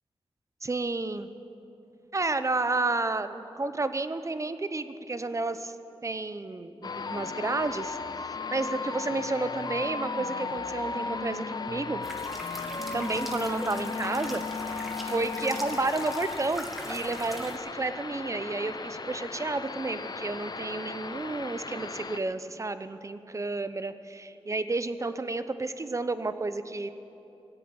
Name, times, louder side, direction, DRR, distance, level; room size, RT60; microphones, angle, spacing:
voice 1, 0.6-1.3 2.1-5.7 6.0-8.0 8.5-12.1 12.9-26.9, right 3 dB, 30° right, 11 dB, 0.7 m, -31 dB
sound 1, 6.8-22.2, left 4 dB, 45° left, 0.6 m, -36 dB
sound 2, 12.0-17.6, equal, ahead, 1.6 m, -41 dB
18.0 x 7.9 x 8.7 m, 2.9 s
wide cardioid pair, 75°, 10 cm